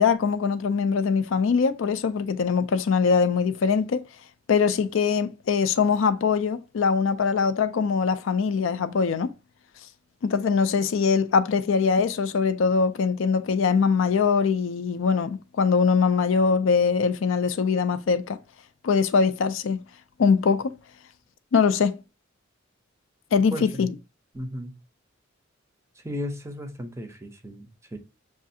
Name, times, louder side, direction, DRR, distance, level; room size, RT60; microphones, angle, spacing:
voice 1, 0.0-4.0 4.5-9.3 10.2-18.4 18.8-19.8 20.2-20.7 21.5-22.0 23.3-23.9, left 5 dB, 65° left, 0.4 m, -22 dB
voice 2, 23.5-23.9 24.3-24.7 26.0-28.0, left 1 dB, 15° right, 0.5 m, -35 dB
6.2 x 2.4 x 2.7 m
head